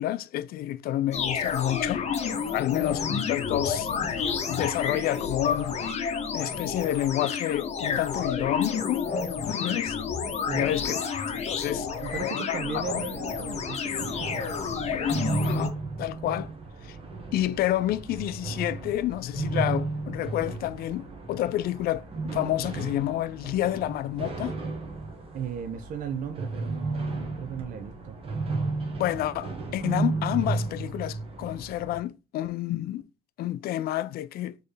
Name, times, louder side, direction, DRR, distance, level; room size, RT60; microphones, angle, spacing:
voice 1, 0.0-2.0 2.5-3.9 4.5-5.8 6.3-9.1 9.5-10.0 10.5-11.0 11.5-13.0 14.9-16.5 16.8-17.0 17.3-24.6 29.0-33.0 33.4-34.6, left 13 dB, 65° left, 0.4 m, -29 dB
sound 1, 1.1-15.7, left 6 dB, 40° left, 0.8 m, -30 dB
voice 2, 11.8-14.1 25.3-28.2, right 7 dB, 50° right, 0.5 m, -36 dB
sound 2, 12.7-32.0, right 3 dB, 35° right, 1.1 m, -34 dB
4.3 x 3.2 x 3.2 m
cardioid pair, 110°, 17 cm